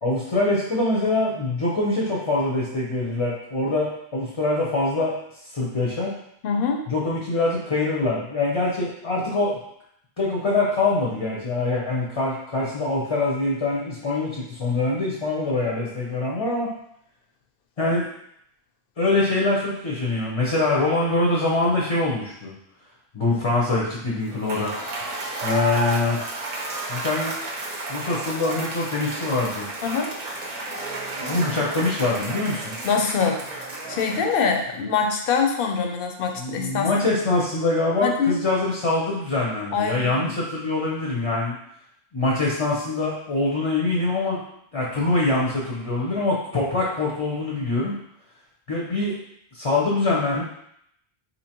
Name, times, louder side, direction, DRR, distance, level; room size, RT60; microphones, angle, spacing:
voice 1, 0.0-5.2 5.5-6.1 6.9-9.6 10.2-16.7 17.8-18.1 19.0-22.5 23.1-24.7 25.4-26.2 26.9-27.4 27.9-29.7 31.3-32.8 36.4-41.6 42.1-44.4 44.7-47.9 48.7-49.1 49.5-50.4, left 2 dB, 35° left, -4 dB, 0.6 m, -24 dB
voice 2, 6.4-6.8 29.8-30.1 32.8-33.4 33.9-37.0 38.0-38.4 39.7-40.3, left 5 dB, 65° left, 3 dB, 0.8 m, -24 dB
Cheering / Applause / Crowd, 24.3-34.7, right 2 dB, 45° right, 0.7 m, -32 dB
4.3 x 2.8 x 2.9 m, 0.72 s
omnidirectional pair, 1.0 m